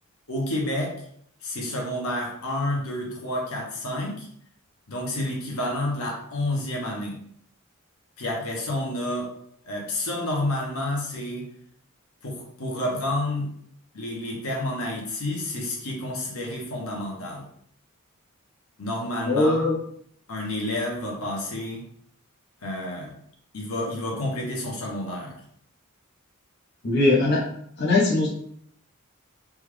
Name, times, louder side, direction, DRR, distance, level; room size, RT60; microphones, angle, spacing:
voice 1, 0.3-1.0 1.4-4.3 4.9-7.2 8.2-9.3 9.6-11.5 12.2-13.5 13.9-17.5 18.8-19.7 20.3-21.9 22.6-23.1 23.5-25.4, left 1 dB, 80° left, -1 dB, 0.9 m, -29 dB
voice 2, 19.3-19.8 26.8-27.4 27.8-28.3, left 2 dB, 55° left, -5 dB, 0.7 m, -20 dB
3.4 x 2.3 x 3.2 m, 0.65 s
head